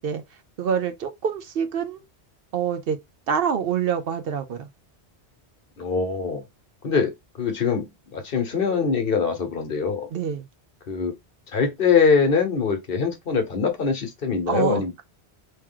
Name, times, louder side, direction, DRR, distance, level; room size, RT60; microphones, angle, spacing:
voice 1, 0.6-2.0 2.5-3.0 3.3-4.7 10.1-10.4 14.5-14.8, right 7 dB, 65° right, 0.7 m, -26 dB
voice 2, 5.8-6.4 6.8-10.1 10.9-11.1 11.5-15.0, left 5 dB, 55° left, 1.1 m, -23 dB
3.0 x 2.9 x 3.7 m
omnidirectional pair, 1.1 m